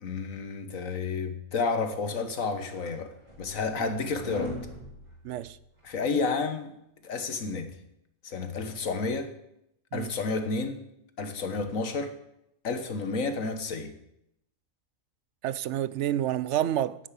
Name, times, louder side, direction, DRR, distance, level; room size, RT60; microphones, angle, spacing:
voice 1, 0.0-4.6 5.8-6.7 7.0-7.7 8.2-9.3 9.9-10.9 11.2-12.2 12.6-14.0, left 4 dB, 75° left, 1.7 m, -31 dB
sound 1, 2.3-5.9, left 1 dB, 30° right, 3.2 m, -42 dB
voice 2, 5.2-5.6 9.9-10.1 15.4-17.0, right 12 dB, 65° right, 0.9 m, -29 dB
9.6 x 9.6 x 8.4 m
omnidirectional pair, 1.4 m